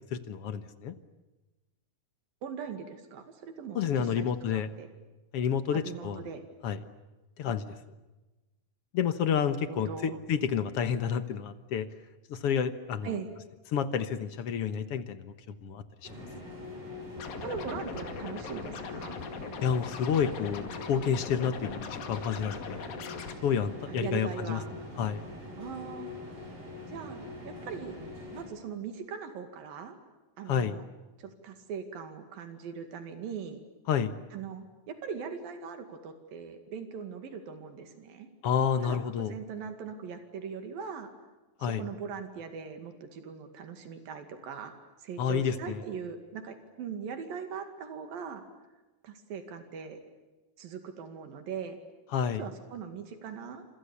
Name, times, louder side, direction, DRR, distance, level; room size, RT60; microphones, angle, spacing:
voice 1, 0.1-0.9 3.7-4.7 5.3-6.2 6.6-6.8 7.4-7.8 8.9-11.9 12.3-13.1 13.7-15.3 15.6-16.1 19.6-22.8 23.4-24.6 25.0-25.2 30.5-30.8 33.9-34.1 38.4-39.3 41.6-41.8 45.2-45.8 52.1-52.4, left 7 dB, 60° left, 11 dB, 1.7 m, -29 dB
voice 2, 2.4-4.9 5.7-6.4 9.4-10.2 13.0-13.3 17.4-19.2 23.9-24.7 25.6-26.1 26.9-27.2 27.4-28.0 28.3-30.0 30.4-30.9 31.2-33.6 34.3-38.3 38.8-41.1 41.6-44.7 45.0-48.4 49.0-50.0 50.6-51.8 52.2-53.7, right 6 dB, 85° right, 7 dB, 4.0 m, -40 dB
sound 1, 16.0-28.4, left 1 dB, 45° right, 9.1 m, -43 dB
Scratching (performance technique), 17.2-23.3, left 6 dB, 85° left, 4.0 m, -41 dB
28.5 x 27.0 x 7.1 m, 1.1 s
omnidirectional pair, 4.0 m